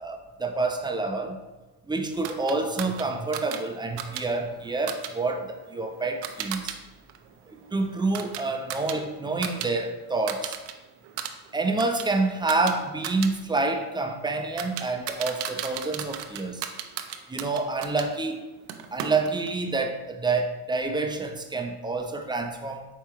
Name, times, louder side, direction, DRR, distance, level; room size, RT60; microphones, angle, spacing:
voice 1, 0.0-1.4 1.9-6.8 7.5-10.6 11.5-16.7 17.3-18.5 18.9-22.9, right 3 dB, 10° right, 4 dB, 0.4 m, -28 dB
sound 1, 2.2-6.8 7.1-9.7 10.0-10.7 11.0-18.1 18.7-19.6, right 9 dB, 65° right, 0.6 m, -37 dB
4.7 x 3.4 x 3.0 m, 1.1 s
supercardioid pair, 75°, 45 cm